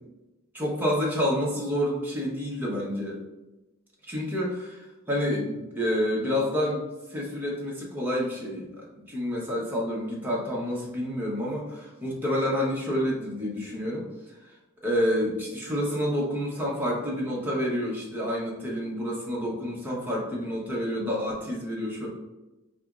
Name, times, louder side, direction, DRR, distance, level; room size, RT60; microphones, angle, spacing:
voice 1, 0.5-3.2 4.0-6.8 7.1-14.1 14.4-14.5 14.8-22.1, equal, 10° right, -5 dB, 0.8 m, -29 dB
4.8 x 2.9 x 2.4 m, 1.0 s
head